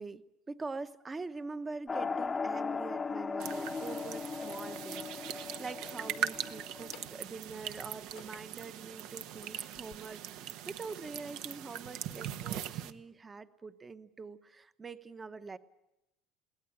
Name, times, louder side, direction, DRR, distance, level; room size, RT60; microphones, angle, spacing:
voice 1, 0.0-15.6, right 4 dB, 20° right, 11 dB, 1.0 m, -44 dB
sound 1, 1.7-1.8 2.7-3.5 4.2-4.8 5.5-6.4 6.8-7.4 7.8-8.7 9.2-10.0, left 14 dB, 75° left, 1.5 m, -58 dB
sound 2, 1.9-7.1, left 4 dB, 20° left, 0.9 m, -38 dB
sound 3, 3.4-12.9, right 10 dB, 65° right, 1.0 m, -41 dB
22.5 x 17.0 x 9.9 m, 0.91 s
cardioid pair, 140°, 0 cm